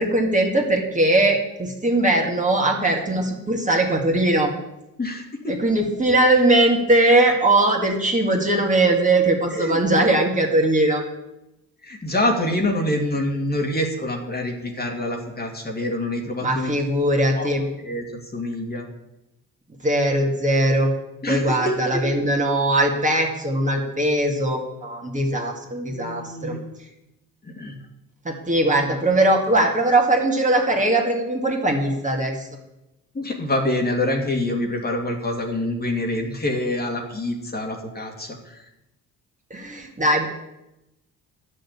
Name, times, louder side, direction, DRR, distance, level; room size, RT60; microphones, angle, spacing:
voice 1, 0.0-4.5 5.5-11.0 16.4-17.7 19.8-20.9 21.3-26.5 28.2-32.5 39.5-40.2, right 1 dB, 25° right, 0 dB, 2.2 m, -20 dB
voice 2, 5.0-5.6 9.5-9.8 11.8-16.7 17.4-17.5 17.8-18.9 21.2-22.0 25.9-26.6 27.4-27.7 33.1-38.6, left 1 dB, 30° left, 1 dB, 2.3 m, -26 dB
10.0 x 6.7 x 8.5 m, 0.92 s
cardioid pair, 85°, 32 cm